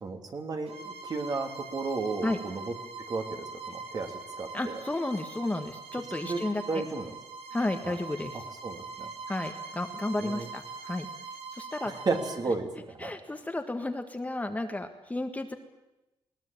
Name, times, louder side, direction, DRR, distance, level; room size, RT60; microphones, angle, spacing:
voice 1, 0.0-2.7 3.1-4.8 6.2-6.4 6.7-7.1 7.8-8.0 8.3-9.1 10.2-10.5 11.9-13.2, right 3 dB, 40° right, 4 dB, 3.2 m, -33 dB
Bowed string instrument, 0.7-12.5, right 4 dB, 80° right, 3.2 m, -42 dB
voice 2, 4.5-6.6 7.5-8.4 9.3-11.1 11.5-11.9 13.0-15.5, left 2 dB, 15° left, 6 dB, 1.7 m, -32 dB
20.5 x 19.5 x 8.9 m, 0.97 s
wide cardioid pair, 135°, 10 cm